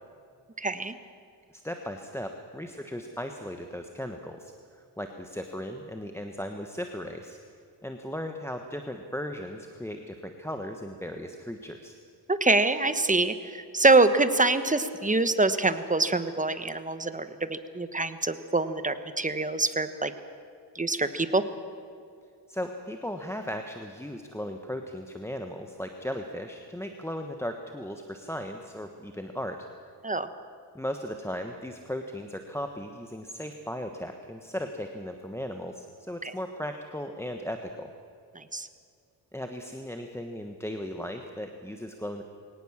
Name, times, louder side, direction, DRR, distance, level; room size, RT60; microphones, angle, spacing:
voice 1, 0.6-0.9 12.3-20.1 20.7-21.4 30.0-30.3 36.2-36.3 38.3-38.7, right 3 dB, 15° right, 11 dB, 1.2 m, -25 dB
voice 2, 1.5-7.4 7.8-12.0 22.5-29.7 30.7-37.9 39.3-42.2, equal, 5° left, 5 dB, 1.3 m, -37 dB
23.0 x 18.5 x 7.4 m, 2.4 s
cardioid pair, 95°, 44 cm